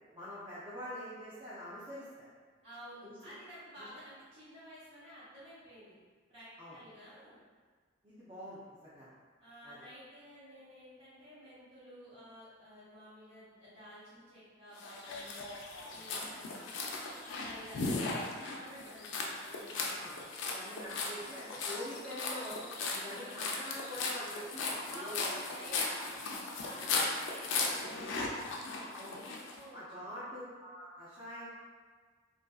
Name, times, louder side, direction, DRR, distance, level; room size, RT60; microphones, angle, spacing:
voice 1, 0.1-2.3 3.0-3.2 3.8-3.9 6.6-6.8 8.0-9.1 9.6-9.8 15.9-16.4 20.0-20.1 20.4-22.6 22.9-25.4 28.9-29.2 29.7-31.5, equal, 25° right, -12 dB, 0.5 m, -45 dB
voice 2, 2.6-6.0 6.3-7.4 9.4-15.4 15.8-16.7 17.4-20.1 23.0-23.4 24.9-30.2, equal, 65° right, -15 dB, 0.9 m, -52 dB
sound 1, 14.8-29.5, left 3 dB, 65° left, 0.4 m, -37 dB
2.6 x 2.4 x 2.3 m, 1.5 s
head